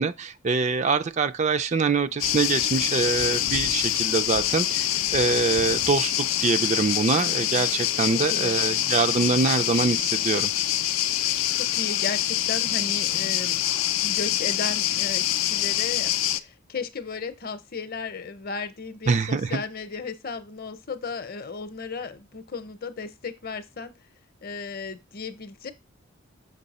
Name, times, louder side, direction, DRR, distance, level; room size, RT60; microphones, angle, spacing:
voice 1, 0.0-10.5 19.1-19.6, right 4 dB, 35° right, 0.4 m, -24 dB
sound 1, 2.2-16.4, left 12 dB, 85° left, 0.5 m, -25 dB
voice 2, 11.5-13.6 14.0-23.9 24.4-25.7, left 4 dB, 45° left, 0.7 m, -35 dB
6.6 x 5.4 x 4.1 m
head